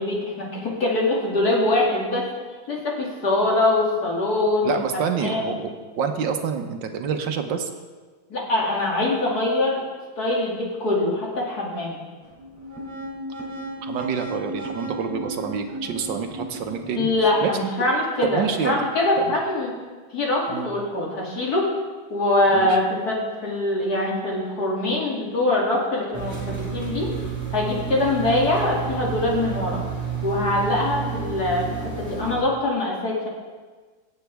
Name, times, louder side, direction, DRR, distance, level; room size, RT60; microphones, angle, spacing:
voice 1, 0.0-2.3 2.7-5.6 8.3-9.8 10.2-12.0 16.9-19.7 20.1-21.7 22.1-27.1 27.5-29.8 30.2-33.3, left 2 dB, 55° left, -3 dB, 3.0 m, -23 dB
voice 2, 4.6-7.7 13.8-17.7 18.2-18.8 20.5-20.7 22.5-22.8 28.0-28.1, right 6 dB, 85° right, 5 dB, 1.7 m, -27 dB
sound 1, 12.2-17.4, right 1 dB, 10° left, 2.7 m, -35 dB
sound 2, 26.1-32.4, right 7 dB, 30° right, 4.3 m, -30 dB
24.5 x 8.2 x 3.5 m, 1.4 s
omnidirectional pair, 2.0 m